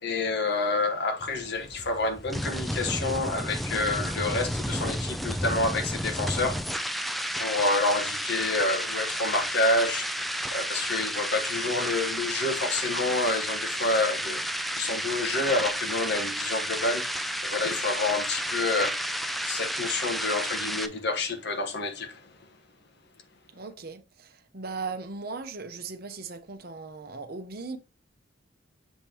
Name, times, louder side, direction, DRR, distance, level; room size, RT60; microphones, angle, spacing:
voice 1, 0.0-22.3, left 2 dB, 55° left, 1.3 m, -29 dB
sound 1, 1.2-20.9, equal, ahead, 0.4 m, -31 dB
voice 2, 23.5-27.8, right 4 dB, 50° right, 0.9 m, -38 dB
7.3 x 5.2 x 2.9 m
head